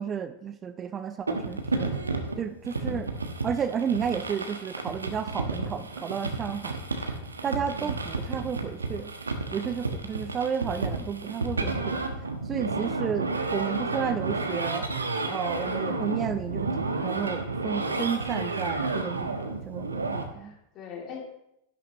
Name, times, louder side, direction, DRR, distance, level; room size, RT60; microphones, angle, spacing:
voice 1, 0.0-1.9 2.4-3.1 3.4-7.1 7.4-9.1 9.5-12.0 12.5-14.9 15.3-16.7 17.0-20.5, right 7 dB, 25° right, 11 dB, 0.5 m, -32 dB
sound 1, 1.3-20.2, right 3 dB, 75° right, 1.1 m, -31 dB
voice 2, 2.7-3.1 7.7-8.0 15.7-15.9 20.4-21.3, left 5 dB, 35° left, 0 dB, 2.7 m, -43 dB
12.0 x 11.5 x 3.0 m, 0.82 s
figure-of-eight pair, 90°, 0 cm